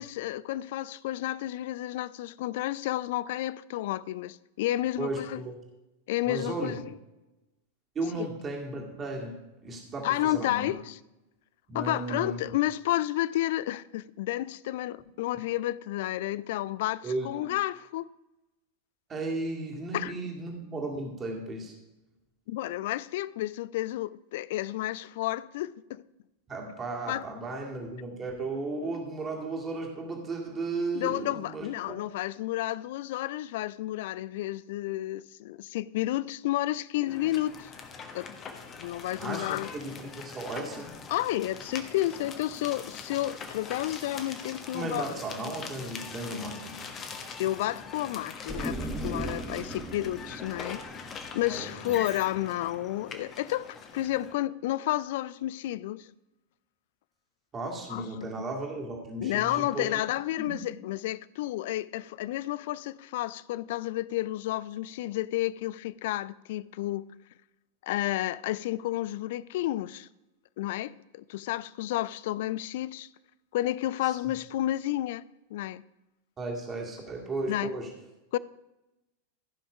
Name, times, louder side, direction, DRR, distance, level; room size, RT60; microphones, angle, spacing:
voice 1, 0.0-5.4 6.1-6.8 8.2-8.3 10.0-11.0 11.7-18.1 19.9-20.1 22.5-26.0 27.1-27.2 30.9-37.7 38.1-38.3 38.8-39.7 41.1-45.1 47.4-50.8 51.3-56.1 57.9-58.1 59.2-67.0 67.8-70.1 70.6-73.1 73.5-75.2 75.5-75.8 77.5-77.7 78.3-78.4, left 15 dB, 50° left, 0.3 m, -31 dB
voice 2, 5.0-5.5 6.2-6.8 8.0-10.7 11.7-12.4 17.0-17.3 19.1-21.8 26.5-32.0 39.2-40.9 44.7-46.9 49.6-49.8 51.5-51.9 57.5-60.0 60.4-60.7 74.0-74.2 76.4-77.9, right 2 dB, 20° right, 2.1 m, -35 dB
sound 1, 37.1-54.3, left 5 dB, 25° left, 1.3 m, -43 dB
sound 2, 48.5-52.1, right 1 dB, ahead, 1.0 m, -37 dB
14.5 x 5.8 x 5.0 m
figure-of-eight pair, 90°, 0 cm